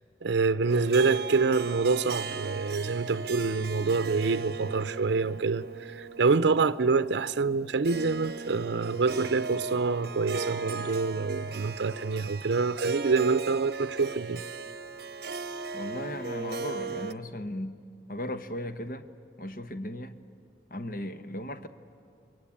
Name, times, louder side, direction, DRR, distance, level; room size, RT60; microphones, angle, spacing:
voice 1, 0.2-14.4, right 4 dB, 85° right, 0.6 m, -26 dB
Harp, 0.7-17.1, right 4 dB, 60° right, 0.9 m, -37 dB
voice 2, 15.7-17.7 18.1-19.0 19.4-20.1 20.7-21.7, left 1 dB, 50° left, 1.0 m, -36 dB
29.0 x 22.5 x 8.7 m
head